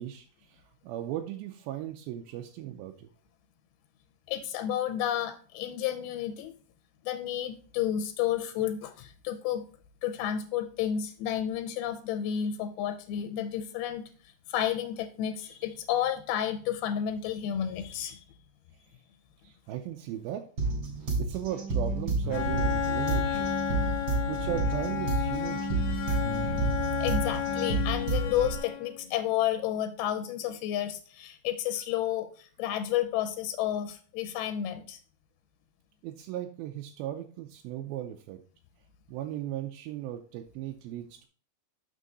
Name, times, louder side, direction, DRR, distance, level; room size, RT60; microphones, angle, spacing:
voice 1, 0.0-3.1 19.4-20.5 21.2-23.6 24.3-26.1 36.0-38.4 39.1-41.3, right 11 dB, 85° right, 3 dB, 2.4 m, -37 dB
voice 2, 4.3-6.5 7.0-9.7 10.0-14.0 14.5-18.3 23.7-24.2 27.0-35.0, left 10 dB, 85° left, 8 dB, 2.6 m, -31 dB
sound 1, 20.6-28.6, right 3 dB, 45° right, 2.3 m, -30 dB
Bowed string instrument, 22.3-29.0, left 11 dB, 70° left, 1.8 m, -32 dB
6.4 x 6.2 x 4.0 m, 0.41 s
omnidirectional pair, 4.4 m